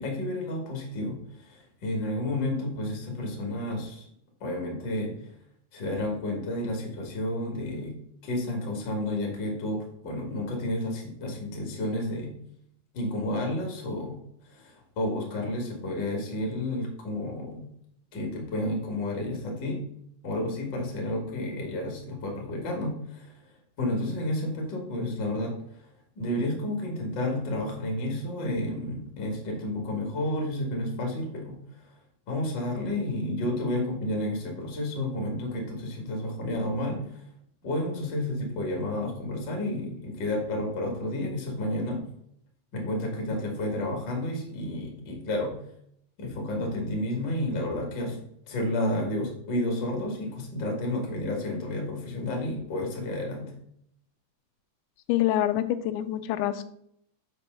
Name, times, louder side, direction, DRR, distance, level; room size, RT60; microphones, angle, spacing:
voice 1, 0.0-4.1 4.4-5.2 5.7-7.9 8.2-12.3 12.9-14.2 14.4-17.7 18.1-19.8 20.2-23.3 23.8-25.6 26.2-31.6 32.3-37.2 37.6-42.0 42.7-45.6 46.2-48.2 48.5-53.5, left 1 dB, 35° left, 1 dB, 1.9 m, -31 dB
voice 2, 55.1-56.6, left 13 dB, 90° left, 11 dB, 3.0 m, -26 dB
6.8 x 5.4 x 6.7 m, 0.71 s
omnidirectional pair, 5.1 m